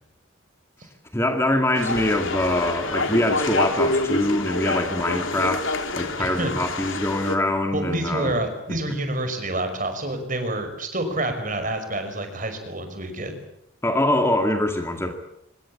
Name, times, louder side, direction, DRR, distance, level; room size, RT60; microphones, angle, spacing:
voice 1, 1.1-8.3 13.8-15.1, left 1 dB, 10° left, 5 dB, 2.2 m, -24 dB
sound 1, 1.7-7.4, left 2 dB, 70° left, 3.4 m, -27 dB
voice 2, 7.7-13.3, right 1 dB, 40° right, 7 dB, 5.6 m, -28 dB
25.5 x 23.0 x 8.8 m, 0.79 s
head